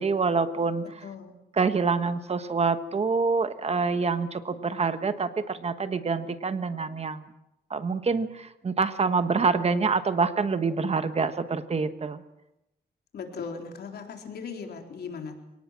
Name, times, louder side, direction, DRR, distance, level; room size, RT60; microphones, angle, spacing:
voice 1, 0.0-0.8 1.6-7.3 7.7-12.2, right 4 dB, 40° right, 10 dB, 1.3 m, -26 dB
voice 2, 0.8-1.4 13.1-15.4, left 5 dB, 75° left, 3 dB, 4.0 m, -38 dB
29.0 x 18.5 x 7.5 m, 0.90 s
wide cardioid pair, 125°, 17 cm